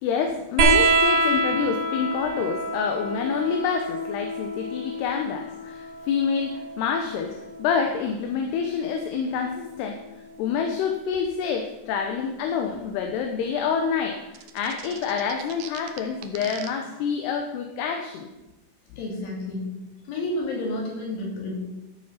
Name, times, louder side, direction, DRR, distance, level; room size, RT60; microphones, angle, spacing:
voice 1, 0.0-10.0 10.4-18.3, left 6 dB, 80° left, 4 dB, 2.9 m, -27 dB
sound 1, 0.6-7.7 9.0-9.8 11.1-11.2, right 2 dB, 55° right, 2.9 m, -26 dB
sound 2, 14.3-16.7, right 10 dB, 75° right, 2.2 m, -40 dB
voice 2, 19.0-19.8 20.1-21.6, left 2 dB, 60° left, -1 dB, 4.4 m, -30 dB
14.0 x 6.9 x 5.6 m, 0.99 s
omnidirectional pair, 4.7 m